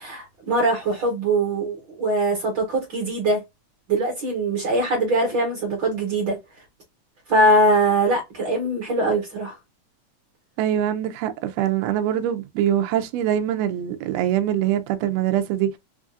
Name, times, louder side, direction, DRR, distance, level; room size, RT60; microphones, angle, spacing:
voice 1, 0.0-3.4 3.9-6.4 7.3-9.5, right 1 dB, 55° right, 1.4 m, -22 dB
voice 2, 10.6-15.7, right 11 dB, 80° right, 1.5 m, -23 dB
4.7 x 2.5 x 2.4 m
omnidirectional pair, 3.4 m